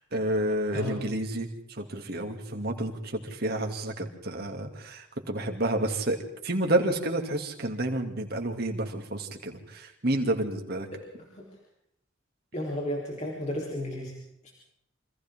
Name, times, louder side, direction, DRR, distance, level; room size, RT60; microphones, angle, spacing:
voice 1, 0.0-6.2 6.4-10.9, right 1 dB, 50° right, 3 dB, 2.7 m, -30 dB
voice 2, 12.5-14.1, left 1 dB, 35° left, -3 dB, 3.9 m, -33 dB
28.5 x 25.5 x 3.8 m, 0.75 s
head